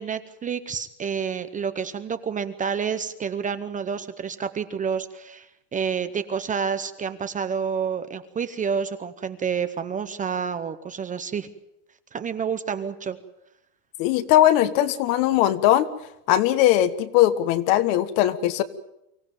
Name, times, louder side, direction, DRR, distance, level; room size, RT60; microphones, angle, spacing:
voice 1, 0.0-11.5 12.1-13.2, right 6 dB, 15° right, 11 dB, 0.8 m, -29 dB
voice 2, 14.0-15.9 16.3-18.6, left 13 dB, 55° left, 12 dB, 1.6 m, -20 dB
24.5 x 15.5 x 9.2 m, 0.87 s
supercardioid pair, 145°, 46 cm